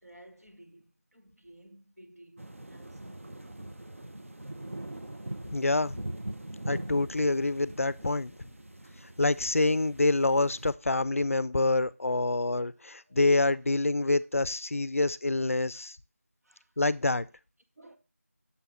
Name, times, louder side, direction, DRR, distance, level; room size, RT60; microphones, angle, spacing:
voice 1, 0.0-3.5 11.4-11.5 13.1-13.2 15.7-15.9 16.4-16.7 17.8-18.0, right 1 dB, 80° right, 1.3 m, -56 dB
sound 1, 2.4-10.7, right 1 dB, 60° right, 0.6 m, -42 dB
voice 2, 5.5-6.0 6.7-8.3 9.2-16.0 16.8-17.3, left 2 dB, 65° left, 0.3 m, -26 dB
6.9 x 4.5 x 3.4 m
figure-of-eight pair, 170°, 8 cm